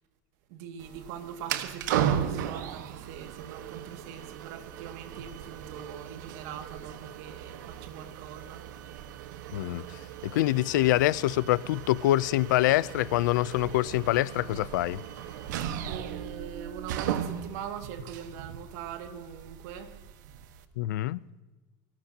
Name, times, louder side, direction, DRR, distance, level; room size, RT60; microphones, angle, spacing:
voice 1, 0.5-8.7 15.9-20.0, right 8 dB, 60° right, 2.2 m, -42 dB
sound 1, 0.8-20.6, right 10 dB, 80° right, 1.4 m, -37 dB
voice 2, 9.5-15.0 20.8-21.2, left 16 dB, 90° left, 0.6 m, -25 dB
24.5 x 18.5 x 2.9 m
supercardioid pair, 165°, 10 cm